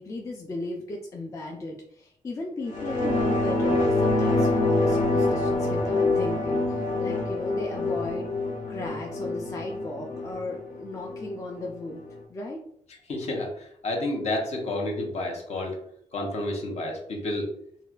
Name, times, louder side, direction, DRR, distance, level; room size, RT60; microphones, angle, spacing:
voice 1, 0.0-8.3 8.7-12.0 12.3-12.6, left 2 dB, 25° left, 0 dB, 0.3 m, -36 dB
sound 1, 2.7-11.7 12.0-12.1, left 2 dB, 80° left, 0.9 m, -26 dB
voice 2, 13.1-15.8 16.1-17.5, left 1 dB, 55° left, 1 dB, 0.8 m, -30 dB
4.1 x 2.1 x 2.4 m, 0.68 s
wide cardioid pair, 160°, 13 cm